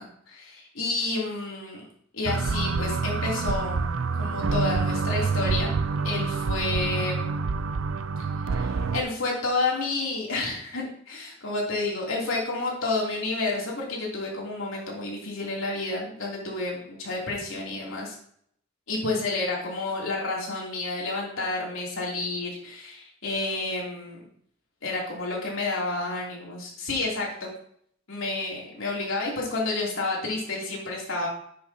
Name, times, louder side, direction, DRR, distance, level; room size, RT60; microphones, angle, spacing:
voice 1, 0.0-1.9 2.1-3.8 4.2-5.8 6.0-7.3 8.5-18.2 18.9-24.2 24.8-27.5 28.1-31.3, left 3 dB, 75° left, -3 dB, 2.9 m, -30 dB
sound 1, 2.2-9.0, right 4 dB, 75° right, 0.5 m, -27 dB
10.5 x 6.6 x 2.8 m, 0.66 s
head